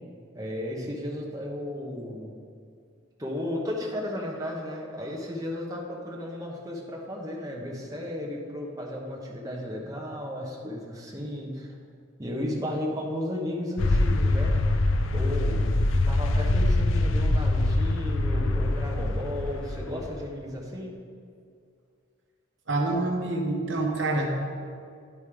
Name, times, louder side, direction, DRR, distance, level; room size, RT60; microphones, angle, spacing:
voice 1, 0.3-2.3 3.2-11.7 12.2-14.5 15.1-20.9, left 1 dB, 20° right, -2 dB, 1.1 m, -34 dB
sound 1, 13.8-20.3, left 2 dB, 80° left, 0.5 m, -24 dB
voice 2, 22.7-24.6, right 2 dB, 70° right, 1 dB, 1.1 m, -27 dB
11.0 x 5.2 x 5.0 m, 2.3 s
head